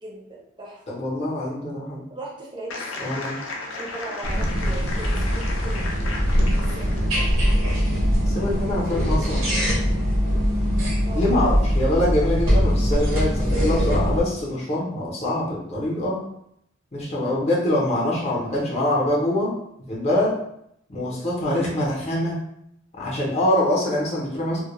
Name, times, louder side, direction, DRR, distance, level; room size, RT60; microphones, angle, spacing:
voice 1, 0.0-0.8 2.1-3.2 3.8-6.1 6.6-7.3 11.0-11.3 17.1-17.4 20.9-21.2, right 2 dB, 25° right, -4 dB, 0.5 m, -39 dB
voice 2, 0.9-2.0 3.0-3.4 8.3-9.4 11.1-16.2 16.9-19.5 19.9-20.3 20.9-22.3 23.0-24.6, left 1 dB, 30° left, -4 dB, 0.6 m, -24 dB
sound 1, 2.7-7.4, left 3 dB, 75° left, 0.4 m, -35 dB
sound 2, 4.2-14.2, equal, 75° right, 0.8 m, -22 dB
2.2 x 2.1 x 2.9 m, 0.74 s
head